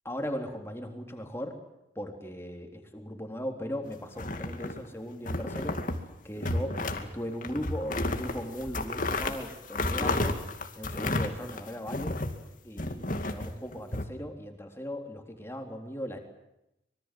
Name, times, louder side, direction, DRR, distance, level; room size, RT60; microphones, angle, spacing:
voice 1, 0.1-1.5 2.0-5.8 6.2-10.3 10.8-12.1 12.6-16.2, equal, 15° left, 3 dB, 3.7 m, -38 dB
sound 1, 4.1-4.9 5.3-6.0 6.4-7.1 7.4-12.4 12.8-14.0, left 2 dB, 50° left, 2.4 m, -32 dB
25.5 x 23.5 x 7.8 m, 0.87 s
head